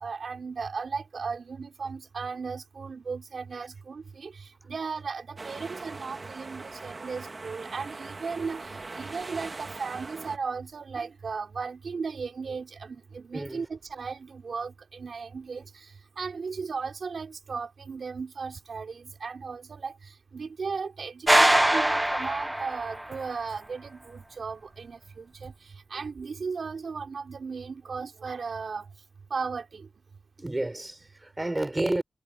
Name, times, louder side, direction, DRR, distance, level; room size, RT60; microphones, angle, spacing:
voice 1, 0.0-4.3 4.7-8.7 8.9-15.6 16.2-19.9 20.3-25.5 25.9-28.8 29.3-29.9, right 5 dB, 85° right, 3.2 m, -36 dB
sound 1, 5.4-10.4, right 3 dB, 55° right, 2.1 m, -41 dB
voice 2, 13.3-13.7 30.4-32.0, right 1 dB, 30° right, 4.2 m, -30 dB
sound 2, 21.3-23.2, right 1 dB, 15° right, 0.4 m, -22 dB
cardioid pair, 40°, 0 cm